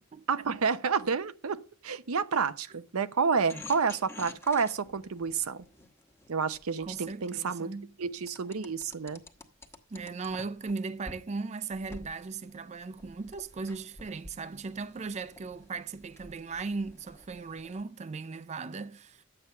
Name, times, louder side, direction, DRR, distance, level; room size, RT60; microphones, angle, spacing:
voice 1, 0.3-5.6 6.3-7.7 8.0-9.2, right 5 dB, 85° right, 0.7 m, -29 dB
sound 1, 3.5-7.4 8.3-10.7 11.1-11.2 11.7-17.8, left 3 dB, 10° left, 1.1 m, -50 dB
voice 2, 6.8-7.9 9.9-19.2, right 4 dB, 30° right, 0.4 m, -38 dB
10.5 x 7.9 x 5.5 m
head